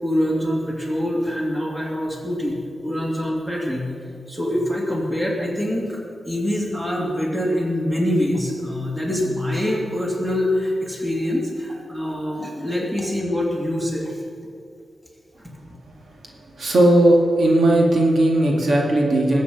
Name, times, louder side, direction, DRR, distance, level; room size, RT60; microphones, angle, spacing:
voice 1, 0.0-3.9 4.3-6.0 6.2-14.2, left 1 dB, 15° right, -2 dB, 2.7 m, -24 dB
voice 2, 16.5-19.4, right 1 dB, 70° right, -1 dB, 2.1 m, -17 dB
20.5 x 8.3 x 5.4 m, 2.5 s
wide cardioid pair, 125°, 0 cm